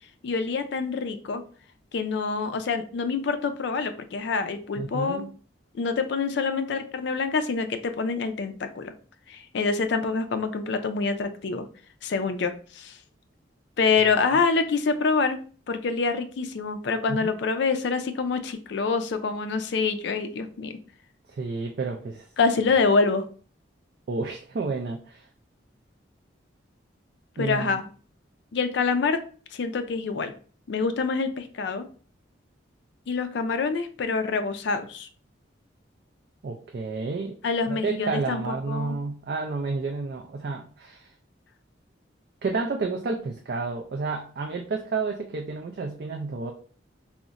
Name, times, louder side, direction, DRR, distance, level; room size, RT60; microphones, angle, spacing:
voice 1, 0.2-1.4 1.9-5.3 5.7-8.9 9.3-11.7 12.0-13.0 13.8-15.4 15.7-20.8 22.4-23.3 27.4-27.9 28.5-29.2 29.5-30.3 30.7-31.9 33.1-35.1 37.4-39.0, left 4 dB, 60° left, 9 dB, 0.4 m, -26 dB
voice 2, 4.8-5.3 17.1-17.3 21.3-22.3 24.1-25.3 27.4-27.8 36.4-37.3 37.7-41.1 42.4-46.5, right 3 dB, 50° right, 2 dB, 0.3 m, -30 dB
2.4 x 2.1 x 3.9 m, 0.41 s
head